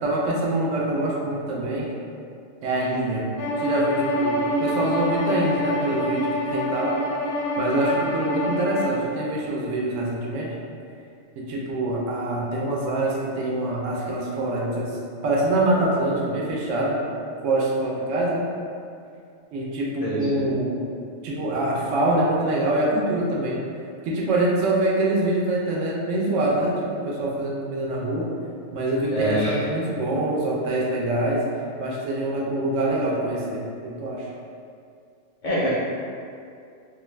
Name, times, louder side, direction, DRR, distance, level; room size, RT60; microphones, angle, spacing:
voice 1, 0.0-1.9 2.6-3.3 3.6-6.9 7.6-10.5 11.4-14.9 15.2-17.0 17.4-18.5 19.5-20.7 21.2-23.6 24.0-28.3 28.7-31.4 31.8-34.3, right 1 dB, 85° right, -3 dB, 0.9 m, -25 dB
Bowed string instrument, 3.4-9.0, equal, 80° left, 1.0 m, -26 dB
voice 2, 20.0-20.4 29.1-29.6 35.4-35.7, right 1 dB, 55° left, -8 dB, 0.5 m, -25 dB
2.6 x 2.3 x 3.1 m, 2.4 s
omnidirectional pair, 1.3 m